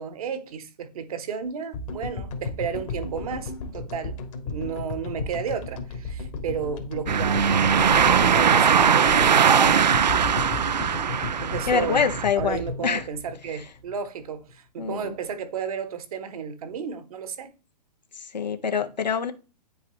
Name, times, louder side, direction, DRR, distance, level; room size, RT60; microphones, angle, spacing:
voice 1, 0.0-4.2 4.4-7.8 8.2-9.6 10.1-10.4 11.4-12.0 12.3-17.5, right 7 dB, 60° right, 1.1 m, -33 dB
sound 1, 1.7-14.1, left 4 dB, 50° left, 1.8 m, -34 dB
sound 2, 7.1-12.2, right 7 dB, 85° right, 0.5 m, -20 dB
voice 2, 11.7-13.0 14.8-15.1 18.2-19.3, left 6 dB, 80° left, 1.2 m, -25 dB
9.2 x 4.7 x 3.9 m
figure-of-eight pair, 120°, 21 cm